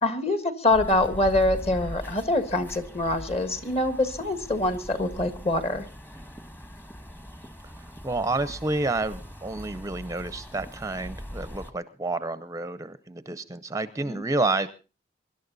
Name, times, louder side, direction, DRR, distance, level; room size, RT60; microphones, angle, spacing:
voice 1, 0.0-5.9 14.0-14.2, left 2 dB, 35° left, 11 dB, 1.7 m, -25 dB
sound 1, 0.7-11.7, equal, 10° left, 1.2 m, -41 dB
voice 2, 8.0-14.7, right 2 dB, 15° right, 14 dB, 0.7 m, -29 dB
24.0 x 12.0 x 4.0 m, 0.34 s
head